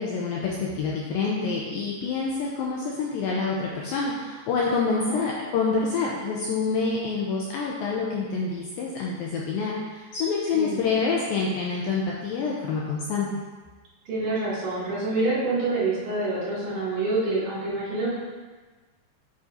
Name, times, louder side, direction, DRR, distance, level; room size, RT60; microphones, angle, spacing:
voice 1, 0.0-13.3, left 4 dB, 80° left, -3 dB, 2.1 m, -27 dB
voice 2, 14.1-18.1, right 2 dB, 60° right, -8 dB, 4.0 m, -27 dB
7.7 x 7.4 x 2.7 m, 1.3 s
omnidirectional pair, 4.8 m